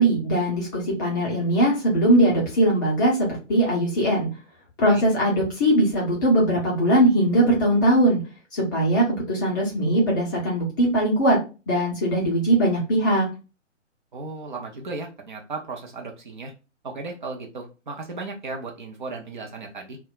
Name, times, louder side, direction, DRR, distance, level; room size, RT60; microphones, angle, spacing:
voice 1, 0.0-3.2 3.5-4.3 4.8-8.2 8.5-11.4 11.7-13.3, right 1 dB, 15° left, -4 dB, 0.5 m, -20 dB
voice 2, 14.1-16.5 16.8-20.0, right 3 dB, 40° right, 2 dB, 0.5 m, -35 dB
2.2 x 2.0 x 3.7 m, 0.31 s
figure-of-eight pair, 130°, 37 cm